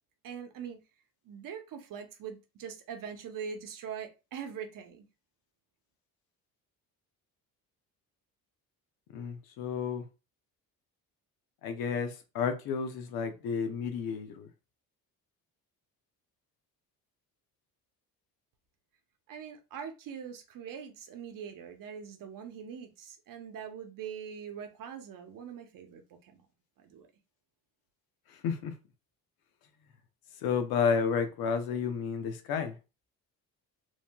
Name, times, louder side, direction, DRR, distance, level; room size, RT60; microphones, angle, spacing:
voice 1, 0.2-0.8 1.2-5.0 19.3-26.4 26.8-27.1, right 7 dB, 65° right, 0.8 m, -42 dB
voice 2, 9.1-10.0 11.6-14.5 28.4-28.7 30.4-32.7, left 6 dB, 85° left, 0.7 m, -31 dB
3.0 x 2.8 x 2.2 m
cardioid pair, 115°, 35 cm